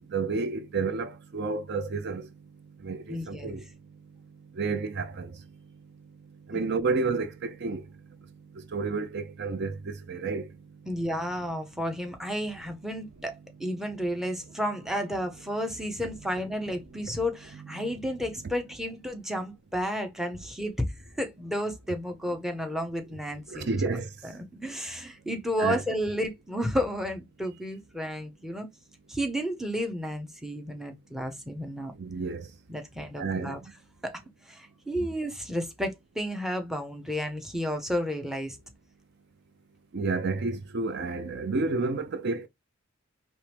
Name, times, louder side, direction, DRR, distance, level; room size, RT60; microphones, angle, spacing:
voice 1, 0.1-2.2 2.8-3.6 4.6-5.3 6.5-7.8 8.7-10.4 23.5-24.1 25.6-25.8 32.0-32.5 33.2-33.6 39.9-42.5, right 4 dB, 55° right, 0.5 m, -30 dB
voice 2, 3.1-3.6 6.5-6.7 10.9-20.9 21.2-23.8 24.2-28.7 29.1-31.9 32.7-33.6 34.0-34.2 34.5-38.6, equal, ahead, 0.7 m, -32 dB
4.6 x 3.0 x 3.3 m
head